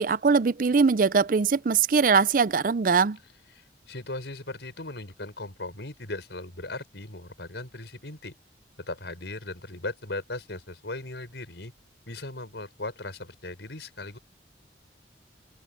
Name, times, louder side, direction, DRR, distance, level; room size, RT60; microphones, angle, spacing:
voice 1, 0.0-3.2, right 5 dB, 50° right, 0.5 m, -22 dB
voice 2, 3.5-8.3 8.9-11.7 12.1-14.2, left 2 dB, 75° left, 4.8 m, -38 dB
head